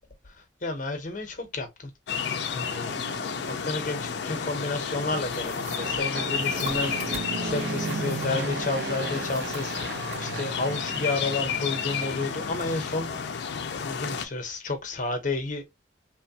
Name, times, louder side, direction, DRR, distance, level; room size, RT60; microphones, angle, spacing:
voice 1, 0.6-1.7 2.5-2.9 3.4-13.3 13.7-15.7, left 3 dB, 40° left, 0.7 m, -31 dB
sound 1, 2.1-14.3, left 6 dB, 60° left, 0.3 m, -32 dB
Fixed-wing aircraft airplane, 2.3-13.4, right 4 dB, 60° right, 0.5 m, -37 dB
sound 2, 5.2-8.5 8.9-10.2, equal, 35° right, 1.3 m, -44 dB
2.9 x 2.1 x 2.7 m
head